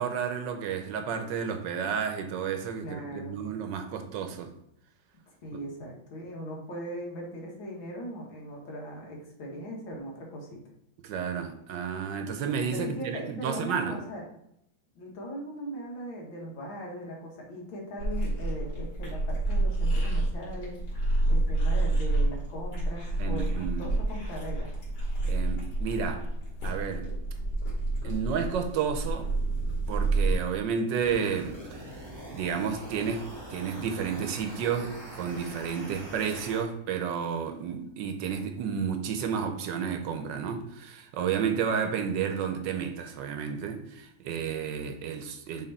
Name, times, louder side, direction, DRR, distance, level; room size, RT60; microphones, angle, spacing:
voice 1, 0.0-4.5 11.0-14.0 23.2-23.9 25.2-26.2 26.6-27.1 28.0-29.3 29.9-31.8 32.3-45.7, right 7 dB, 70° right, 1.3 m, -31 dB
voice 2, 2.8-3.4 5.4-10.6 12.7-14.2 15.0-20.8 21.3-24.7, equal, 75° left, 2.2 m, -39 dB
sound 1, 18.0-30.3, right 2 dB, 60° left, 2.7 m, -29 dB
sound 2, 31.0-36.6, right 1 dB, 15° right, 0.9 m, -43 dB
6.6 x 3.7 x 4.0 m
omnidirectional pair, 2.2 m